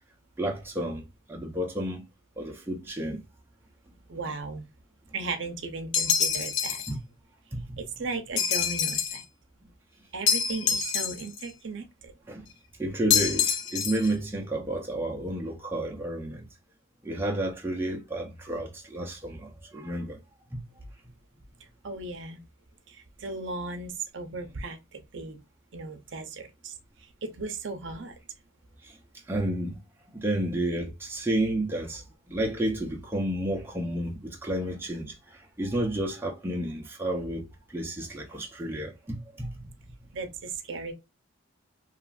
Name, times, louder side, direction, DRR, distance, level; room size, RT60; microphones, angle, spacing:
voice 1, 0.4-2.0 2.4-3.2 6.9-7.0 7.5-7.8 12.3-12.5 12.8-16.5 17.0-20.2 20.5-20.6 28.8-29.0 29.3-29.8 30.1-39.7, right 1 dB, 10° right, 0.5 m, -31 dB
voice 2, 4.1-4.7 5.1-6.8 7.8-9.2 10.1-12.1 21.8-22.4 22.9-25.4 25.7-28.1 40.1-40.9, right 3 dB, 60° right, 0.6 m, -36 dB
sound 1, 5.9-6.9 8.4-9.2 10.3-11.4 13.1-14.1, left 7 dB, 65° left, 0.5 m, -26 dB
2.9 x 2.4 x 2.3 m
head